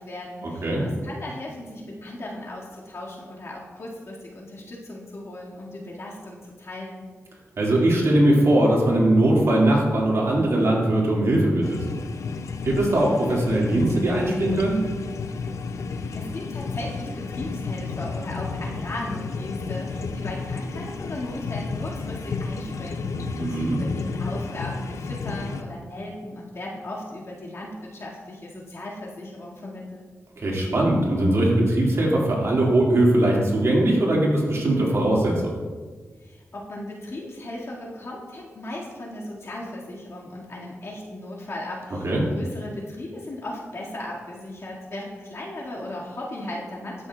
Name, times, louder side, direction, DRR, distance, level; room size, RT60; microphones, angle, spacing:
voice 1, 0.0-7.1 15.9-30.0 36.2-47.1, left 1 dB, 60° left, -4 dB, 2.0 m, -37 dB
voice 2, 7.6-11.8 12.6-14.8 23.1-23.8 30.4-35.6 42.0-42.2, right 1 dB, 60° right, -3 dB, 2.1 m, -20 dB
sound 1, 11.6-25.6, left 4 dB, 75° left, 0.5 m, -32 dB
12.5 x 6.2 x 2.4 m, 1.5 s
cardioid pair, 70°, 5 cm